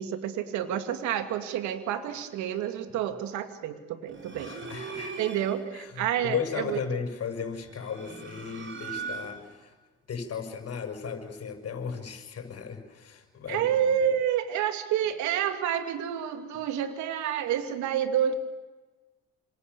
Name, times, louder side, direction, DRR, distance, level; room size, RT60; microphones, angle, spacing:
voice 1, 0.0-4.5 5.2-6.8 13.5-18.3, right 9 dB, 75° right, 8 dB, 2.6 m, -29 dB
sound 1, 4.1-5.7 7.5-9.6, right 5 dB, 40° right, 6.4 m, -40 dB
voice 2, 4.4-5.2 5.7-9.7 10.1-13.8, left 6 dB, 55° left, 5 dB, 6.6 m, -35 dB
28.5 x 27.0 x 7.1 m, 1.2 s
hypercardioid pair, 60°, 29 cm